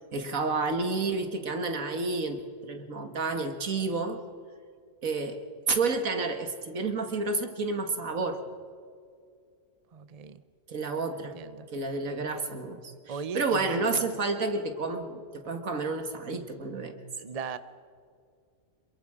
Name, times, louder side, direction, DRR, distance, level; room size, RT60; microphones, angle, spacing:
voice 1, 0.1-4.2 5.0-5.4 5.7-8.4 10.7-11.4 11.7-12.8 13.1-17.0, right 3 dB, 80° right, 6 dB, 2.2 m, -30 dB
voice 2, 9.9-10.4 11.3-11.7 13.1-14.1 17.2-17.6, right 5 dB, 35° right, 12 dB, 0.8 m, -38 dB
27.5 x 22.5 x 5.0 m, 2.2 s
omnidirectional pair, 1.4 m